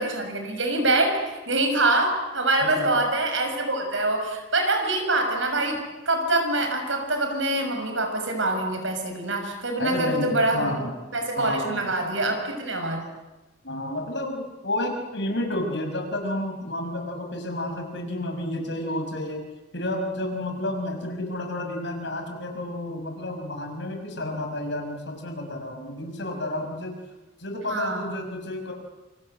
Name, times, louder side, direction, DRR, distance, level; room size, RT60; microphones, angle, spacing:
voice 1, 0.0-10.7 11.1-13.0 27.7-28.0, right 2 dB, 70° right, 4 dB, 6.8 m, -25 dB
voice 2, 2.6-2.9 9.8-11.0 11.4-11.9 13.6-19.4 19.7-27.0 27.4-28.7, left 1 dB, 60° left, 4 dB, 6.2 m, -31 dB
28.0 x 26.0 x 8.0 m, 1.1 s
head